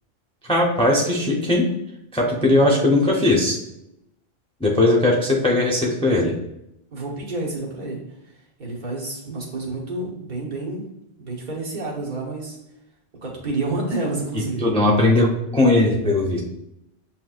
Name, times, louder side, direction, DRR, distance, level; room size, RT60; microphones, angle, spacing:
voice 1, 0.4-1.7 2.1-3.6 4.6-6.3 14.6-16.4, left 2 dB, 5° left, -2 dB, 0.5 m, -18 dB
voice 2, 6.9-8.3 8.6-10.8 11.2-12.6 13.2-14.7, right 2 dB, 50° right, -3 dB, 1.2 m, -29 dB
7.5 x 2.9 x 2.4 m, 0.82 s
omnidirectional pair, 1.1 m